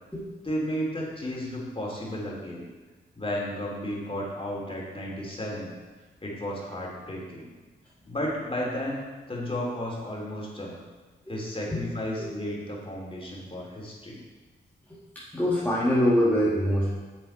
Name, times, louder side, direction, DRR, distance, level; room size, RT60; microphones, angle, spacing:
voice 1, 0.4-2.6 3.1-5.7 6.2-7.5 8.1-9.0 9.3-10.8 11.3-14.2, equal, 25° left, -3 dB, 3.0 m, -33 dB
voice 2, 15.2-16.9, equal, 10° left, -7 dB, 1.9 m, -24 dB
7.7 x 7.2 x 4.4 m, 1.3 s
cardioid pair, 55°, 21 cm